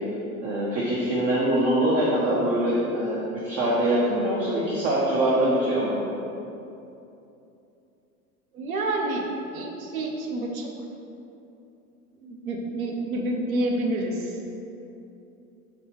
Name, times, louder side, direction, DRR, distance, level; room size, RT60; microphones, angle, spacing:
voice 1, 0.4-6.1, right 1 dB, 25° right, -6 dB, 0.5 m, -23 dB
voice 2, 8.5-10.7 12.2-14.4, right 1 dB, 65° right, 1 dB, 0.7 m, -28 dB
4.8 x 2.3 x 3.3 m, 2.8 s
figure-of-eight pair, 85°, 45 cm